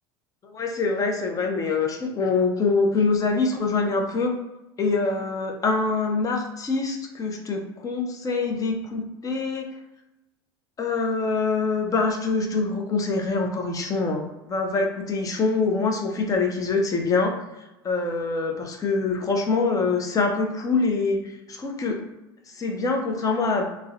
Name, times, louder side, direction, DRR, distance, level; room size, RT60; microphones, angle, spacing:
voice 1, 0.5-4.3 4.8-9.7 10.8-17.4 17.8-22.0 22.5-23.7, left 4 dB, 25° left, 2 dB, 0.5 m, -24 dB
2.5 x 2.1 x 2.4 m, 0.96 s
hypercardioid pair, 90°, 13 cm